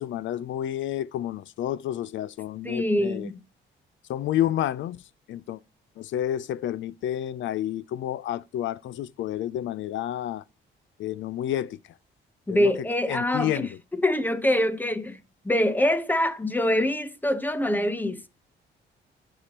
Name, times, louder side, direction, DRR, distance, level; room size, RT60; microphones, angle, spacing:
voice 1, 0.0-3.3 4.1-5.0 5.3-5.6 6.0-10.4 11.0-11.8 12.5-13.7, left 12 dB, 70° left, 0.5 m, -30 dB
voice 2, 2.6-3.4 12.5-18.3, left 1 dB, 10° left, 1.0 m, -25 dB
14.0 x 4.9 x 3.0 m
cardioid pair, 90°, 20 cm